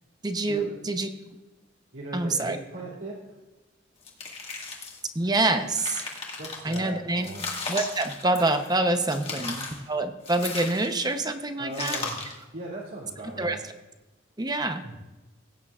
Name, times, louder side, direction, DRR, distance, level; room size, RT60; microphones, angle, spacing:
voice 1, 0.2-1.1 2.1-2.6 5.1-6.0 6.6-7.3 7.7-12.0 13.4-13.6 14.4-14.8, right 2 dB, 20° right, 7 dB, 0.7 m, -26 dB
voice 2, 1.9-3.3 6.4-7.4 9.4-9.5 11.6-12.2 12.5-13.6 14.8-15.0, right 2 dB, 80° right, -8 dB, 2.8 m, -38 dB
sound 1, 4.0-5.1 5.5-6.8 7.2-8.7 9.1-9.8 10.2-11.1 11.7-12.4, left 3 dB, 30° left, 1.8 m, -36 dB
17.0 x 9.2 x 2.4 m, 1.1 s
head